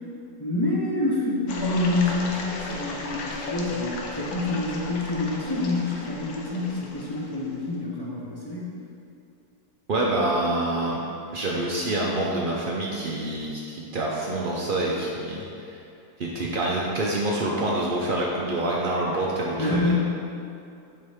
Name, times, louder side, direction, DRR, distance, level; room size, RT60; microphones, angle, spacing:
voice 1, 0.4-8.8 19.6-19.9, left 2 dB, 25° left, -7 dB, 0.5 m, -27 dB
sound 1, 1.5-7.6, left 2 dB, 70° left, 1.2 m, -36 dB
voice 2, 9.9-11.0 11.3-15.8 16.2-19.9, right 1 dB, 85° right, -3 dB, 0.4 m, -26 dB
6.6 x 5.3 x 3.5 m, 2.6 s
omnidirectional pair, 1.7 m